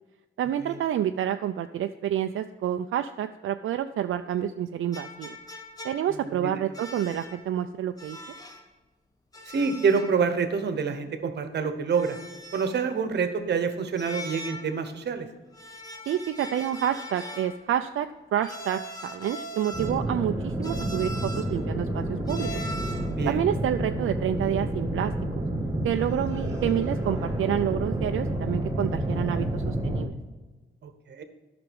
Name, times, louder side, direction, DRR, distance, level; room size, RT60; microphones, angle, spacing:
voice 1, 0.4-5.4 5.8-8.2 16.1-22.5 23.3-25.1 25.8-30.1, right 10 dB, 80° right, 7 dB, 0.4 m, -28 dB
sound 1, 4.9-6.3 6.7-7.5 8.0-8.7 9.3-10.3 10.5-10.6 11.9-12.9 14.0-14.8 15.5-17.6 18.4-20.1 20.6-21.6 22.3-23.1, left 1 dB, 20° left, 1.0 m, -40 dB
voice 2, 6.1-6.7 9.5-12.2 12.5-15.3 23.1-23.4 30.8-31.2, right 5 dB, 55° right, 9 dB, 1.0 m, -27 dB
sound 2, 19.7-30.0, right 1 dB, 15° right, 1.8 m, -29 dB
12.0 x 6.0 x 5.3 m, 1.2 s
wide cardioid pair, 180°, 21 cm